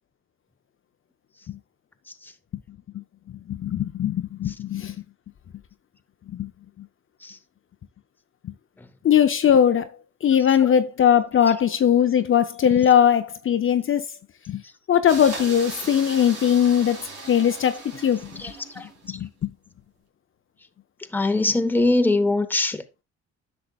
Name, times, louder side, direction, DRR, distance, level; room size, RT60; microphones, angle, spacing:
voice 1, 3.5-5.0 6.3-6.5 8.4-8.5 9.0-9.9 10.2-14.0 14.5-14.6 14.9-18.3 19.1-19.5, left 9 dB, 45° left, 0.6 m, -20 dB
sound 1, 15.1-19.1, right 3 dB, 60° right, 2.8 m, -38 dB
voice 2, 18.4-19.2 21.1-23.0, left 2 dB, 5° left, 0.8 m, -23 dB
10.0 x 6.6 x 2.3 m
cardioid pair, 90°, 30 cm